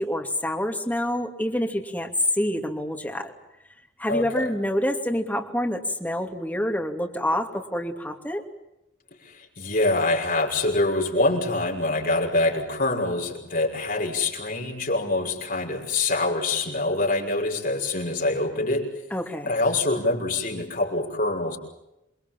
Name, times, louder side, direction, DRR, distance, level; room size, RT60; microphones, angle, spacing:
voice 1, 0.0-3.3 4.0-8.4 19.1-19.5, left 1 dB, 10° left, 2 dB, 2.9 m, -27 dB
voice 2, 4.1-4.5 9.2-18.9 19.5-21.6, left 2 dB, 50° left, 2 dB, 5.9 m, -25 dB
28.5 x 23.0 x 7.5 m, 0.90 s
head